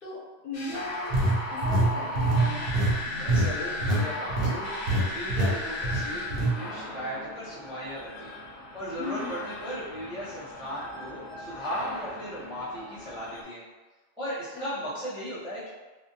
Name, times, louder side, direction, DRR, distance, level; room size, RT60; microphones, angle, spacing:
voice 1, 0.0-2.7 9.0-9.4 14.8-14.9, left 3 dB, 55° left, -8 dB, 0.9 m, -38 dB
sound 1, 0.5-13.4, left 2 dB, 90° left, 1.0 m, -36 dB
sound 2, 1.1-4.0 4.3-4.6 4.9-5.0 5.3-5.5 5.8-6.5, right 2 dB, 60° right, 0.7 m, -24 dB
voice 2, 3.2-4.7 5.1-8.4 8.7-13.6 14.2-15.7, equal, 5° right, -11 dB, 0.5 m, -36 dB
2.6 x 2.0 x 2.7 m, 1.2 s
omnidirectional pair, 1.2 m